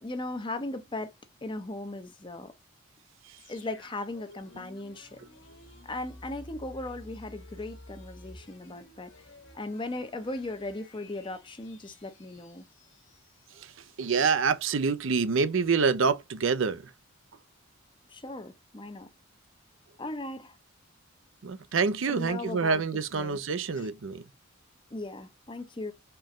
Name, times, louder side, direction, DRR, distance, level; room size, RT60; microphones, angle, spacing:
voice 1, 0.0-1.1 1.4-2.5 3.5-5.2 5.8-9.1 9.5-12.7 18.1-19.1 20.0-20.6 22.1-23.4 23.8-23.9 24.9-25.9, left 2 dB, 25° left, 0.7 m, -37 dB
sound 1, 3.4-14.2 14.5-14.6, left 1 dB, 65° left, 1.5 m, -52 dB
voice 2, 14.0-16.9 21.4-24.2, right 5 dB, 70° right, 0.6 m, -26 dB
4.5 x 3.1 x 3.6 m
head